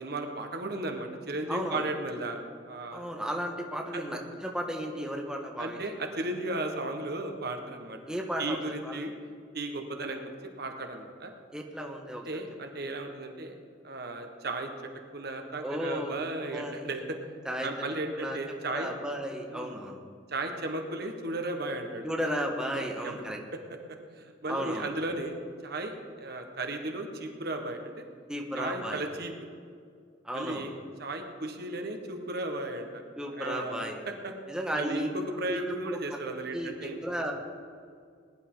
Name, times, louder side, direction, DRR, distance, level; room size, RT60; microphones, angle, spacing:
voice 1, 0.0-2.4 2.7-3.0 3.9-4.0 5.6-8.0 8.4-9.1 9.5-10.2 10.6-11.3 12.1-13.5 13.8-17.2 17.6-18.9 19.5-19.8 20.3-22.1 22.7-23.2 23.5-23.8 24.1-25.4 25.6-28.0 28.5-29.5 30.3-33.0 33.3-34.3 34.7-37.0, right 2 dB, 60° right, 4 dB, 1.5 m, -35 dB
voice 2, 1.5-1.8 2.9-5.8 8.1-8.9 11.5-12.3 15.6-16.2 16.5-16.9 17.4-17.7 18.2-18.4 18.7-20.0 22.0-23.4 24.5-24.9 28.3-29.0 30.2-30.7 33.2-34.0 34.5-35.1 35.4-35.6 35.9-36.0 36.5-36.7 37.0-37.3, equal, 5° right, 0 dB, 1.4 m, -34 dB
20.5 x 11.0 x 3.9 m, 2.2 s
head